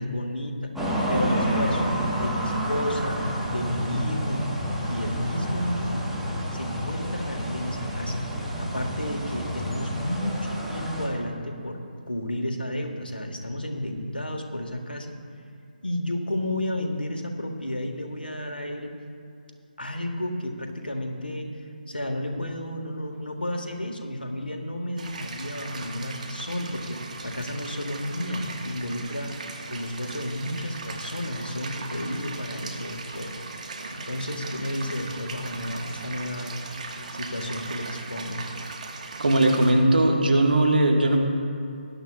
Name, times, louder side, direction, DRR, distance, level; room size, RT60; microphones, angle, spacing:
voice 1, 0.0-3.2 3.5-4.5 4.9-6.1 6.5-8.2 8.6-15.2 15.8-18.9 19.8-21.5 21.9-29.3 29.7-33.3 33.9-36.6 37.1-38.5, left 1 dB, 90° left, 3 dB, 1.7 m, -32 dB
sound 1, 0.8-11.1, equal, ahead, 1.4 m, -29 dB
sound 2, 25.0-39.7, right 3 dB, 50° right, 1.3 m, -38 dB
voice 2, 39.2-41.2, right 1 dB, 70° right, 1 dB, 1.7 m, -19 dB
19.5 x 11.0 x 2.4 m, 2.5 s
figure-of-eight pair, 150°, 5 cm